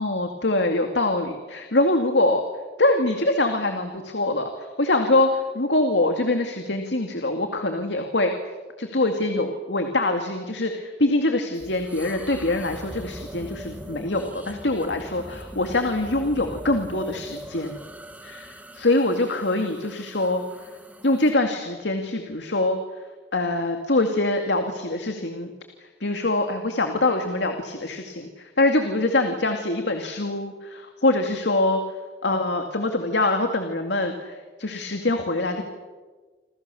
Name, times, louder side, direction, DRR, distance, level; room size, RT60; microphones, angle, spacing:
voice 1, 0.0-2.4 2.8-8.3 8.8-17.8 18.2-18.5 18.7-20.4 21.0-22.8 23.3-25.5 26.0-31.8 32.2-35.6, left 2 dB, 75° left, 5 dB, 2.3 m, -24 dB
sound 1, 11.5-21.4, equal, 10° right, 1.5 m, -41 dB
28.0 x 27.0 x 7.1 m, 1.3 s
head